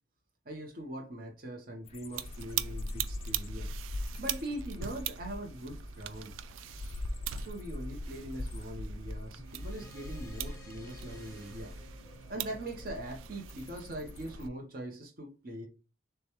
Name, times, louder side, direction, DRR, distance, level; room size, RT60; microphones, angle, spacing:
voice 1, 0.4-3.7 4.2-6.3 7.4-11.7 12.3-15.7, right 1 dB, 45° right, 0.8 m, -42 dB
sound 1, 1.9-14.5, left 1 dB, 30° left, 0.3 m, -42 dB
sound 2, 2.1-14.5, right 11 dB, 85° right, 0.3 m, -42 dB
sound 3, 9.4-14.2, right 1 dB, 15° left, 1.1 m, -54 dB
6.6 x 2.3 x 3.0 m
head